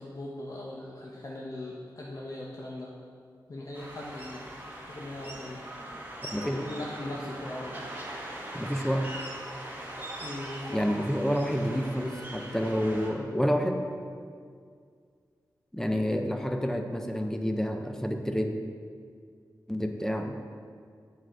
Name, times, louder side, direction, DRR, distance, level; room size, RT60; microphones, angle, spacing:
voice 1, 0.0-2.9 3.5-4.4 4.9-5.6 6.2-7.8 10.2-11.2, left 1 dB, 50° left, -3 dB, 0.8 m, -39 dB
sound 1, 3.7-13.1, right 1 dB, 25° right, 1.5 m, -41 dB
voice 2, 8.5-9.1 10.7-13.9 15.7-18.5 19.7-20.4, equal, 5° left, 4 dB, 0.5 m, -29 dB
7.7 x 6.3 x 3.8 m, 2.1 s
wide cardioid pair, 90°, 7 cm